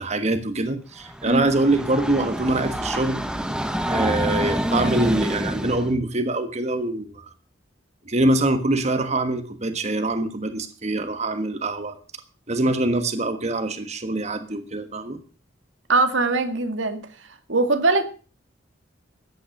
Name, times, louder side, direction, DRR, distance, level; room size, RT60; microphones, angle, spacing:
voice 1, 0.0-3.2 3.9-7.3 8.1-12.0 12.5-15.2, right 2 dB, 35° right, 9 dB, 1.4 m, -24 dB
Train, 1.0-5.9, equal, 5° right, 1.1 m, -27 dB
voice 2, 15.9-17.0 17.5-18.0, right 3 dB, 80° right, 8 dB, 2.0 m, -21 dB
14.5 x 9.8 x 6.5 m, 0.38 s
head